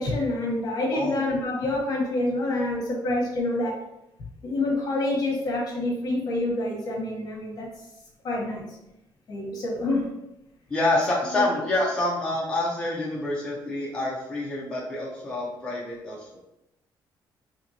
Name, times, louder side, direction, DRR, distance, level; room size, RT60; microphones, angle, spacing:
voice 1, 0.0-3.8 4.4-7.7 8.2-8.7 9.3-10.1 11.3-11.5, left 2 dB, 50° left, -1 dB, 1.2 m, -27 dB
voice 2, 10.7-16.4, left 2 dB, 10° left, -5 dB, 0.7 m, -27 dB
4.3 x 2.8 x 2.8 m, 0.87 s
cardioid pair, 150°, 8 cm